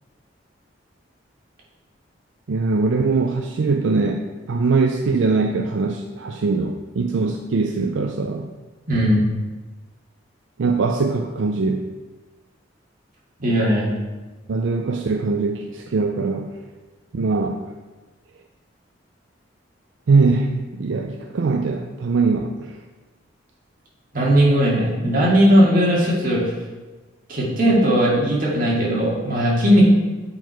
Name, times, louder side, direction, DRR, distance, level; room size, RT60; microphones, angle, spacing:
voice 1, 2.5-8.5 10.6-11.9 14.5-16.5 17.1-17.6 20.1-22.8, right 4 dB, 75° right, 4 dB, 0.5 m, -21 dB
voice 2, 8.9-9.2 13.4-13.9 24.1-26.4 27.3-29.8, equal, 45° right, -5 dB, 2.0 m, -17 dB
7.9 x 4.6 x 4.5 m, 1.2 s
head